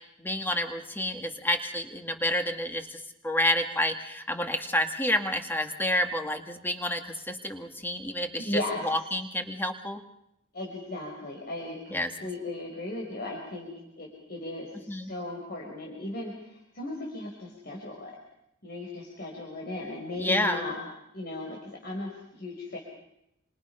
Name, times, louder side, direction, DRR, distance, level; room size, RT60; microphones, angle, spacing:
voice 1, 0.2-2.9 3.2-10.0 11.9-12.1 14.9-15.1 20.2-20.6, left 1 dB, 10° left, 5 dB, 2.0 m, -29 dB
voice 2, 8.4-8.9 10.5-13.7 14.0-18.2 18.6-20.8 21.1-22.8, left 2 dB, 55° left, -1 dB, 5.4 m, -36 dB
28.5 x 27.0 x 5.8 m, 0.81 s
head